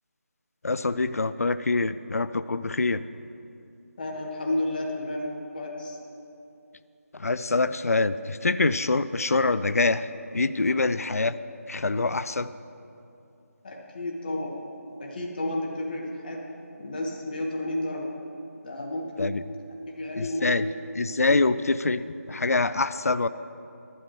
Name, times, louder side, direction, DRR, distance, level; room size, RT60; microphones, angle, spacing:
voice 1, 0.6-3.0 7.1-11.3 11.7-12.5 19.2-19.4 20.2-20.7 20.9-23.3, left 3 dB, 70° left, 14 dB, 0.4 m, -25 dB
voice 2, 4.0-6.0 13.6-14.6 15.0-16.5 16.8-18.1 18.6-19.3 19.9-20.7, left 1 dB, 35° left, -1 dB, 1.8 m, -31 dB
18.5 x 12.0 x 3.4 m, 2.7 s
figure-of-eight pair, 160°, 8 cm